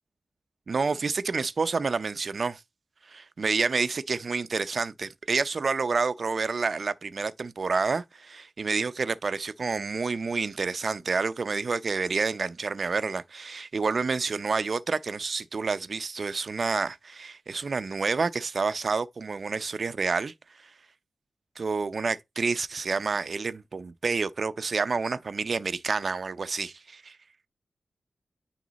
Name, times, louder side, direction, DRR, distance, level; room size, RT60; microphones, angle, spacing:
voice 1, 0.7-2.6 3.1-20.3 21.6-27.2, right 4 dB, 50° right, 0.6 m, -29 dB
9.4 x 3.2 x 4.0 m
wide cardioid pair, 140°, 0 cm